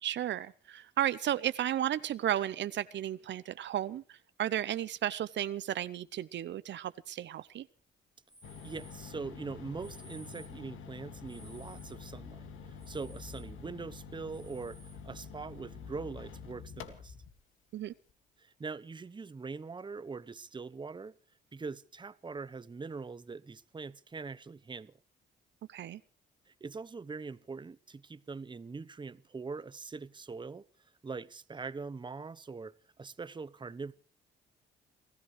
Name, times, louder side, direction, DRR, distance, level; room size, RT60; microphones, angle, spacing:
voice 1, 0.0-7.7 17.7-17.9 25.7-26.0, right 11 dB, 65° right, 0.8 m, -34 dB
sound 1, 8.3-9.1 9.7-10.6 11.3-12.0 12.8-13.5 14.3-15.0, right 1 dB, 5° right, 1.5 m, -57 dB
sound 2, 8.4-17.3, left 5 dB, 85° left, 2.2 m, -47 dB
voice 2, 8.6-17.1 18.4-21.1 21.5-25.0 26.5-30.7 31.0-33.9, right 4 dB, 25° right, 0.9 m, -42 dB
29.5 x 15.0 x 3.3 m
cardioid pair, 90°, 20 cm